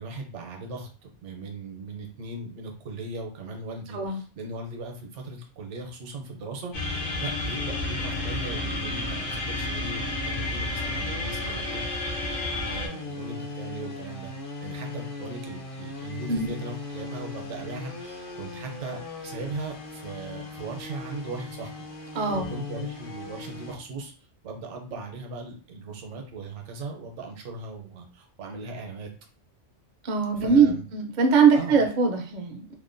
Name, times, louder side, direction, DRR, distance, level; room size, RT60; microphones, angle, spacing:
voice 1, 0.0-11.8 12.7-14.3 14.6-24.1 24.4-29.1 30.3-30.8 31.5-31.8, right 3 dB, 75° right, 2 dB, 0.9 m, -38 dB
sound 1, 6.7-12.9, left 2 dB, 75° left, 1.1 m, -31 dB
sound 2, 6.7-23.7, left 3 dB, 55° left, 0.7 m, -39 dB
voice 2, 22.1-22.5 30.0-32.7, right 5 dB, 60° right, 3 dB, 0.5 m, -22 dB
2.7 x 2.1 x 2.5 m, 0.39 s
omnidirectional pair, 1.3 m